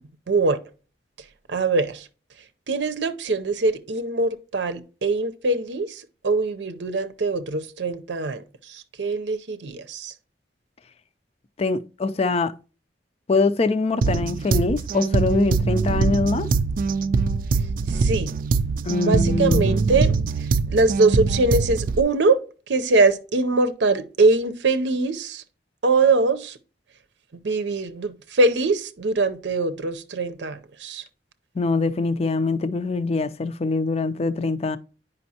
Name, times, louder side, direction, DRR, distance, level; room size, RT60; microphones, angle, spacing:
voice 1, 0.3-0.6 1.5-2.1 2.7-10.1 17.9-18.4 19.0-25.4 25.8-26.6 27.4-31.0, right 3 dB, 80° right, 0.7 m, -23 dB
voice 2, 11.6-12.5 13.3-16.5 18.8-19.8 31.6-34.8, left 3 dB, 35° left, 0.4 m, -23 dB
sound 1, 14.0-22.0, right 4 dB, 50° right, 0.3 m, -23 dB
9.3 x 5.2 x 2.8 m
head